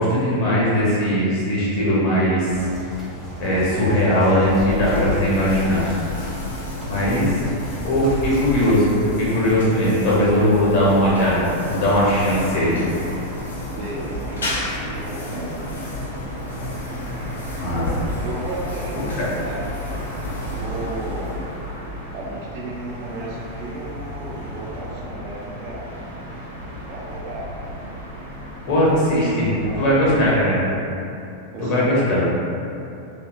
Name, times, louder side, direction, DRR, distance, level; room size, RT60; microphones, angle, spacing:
voice 1, 0.0-2.6 3.4-5.9 6.9-7.3 7.8-12.8 17.6-18.1 19.2-19.3 28.7-30.6 31.6-32.2, equal, 45° left, -7 dB, 0.8 m, -19 dB
sound 1, 2.5-8.7, equal, 5° left, 0.6 m, -34 dB
sound 2, 4.4-21.8, left 1 dB, 70° left, 0.5 m, -31 dB
voice 2, 6.9-7.3 13.7-15.6 18.2-19.7 20.4-21.4 22.1-25.9 26.9-27.7 29.4-30.2 30.5-30.6 31.5-31.9, right 2 dB, 45° right, -4 dB, 0.4 m, -34 dB
sound 3, 10.8-30.3, equal, 85° right, 0.9 m, -35 dB
2.7 x 2.2 x 2.4 m, 2.7 s
figure-of-eight pair, 90°, 0 cm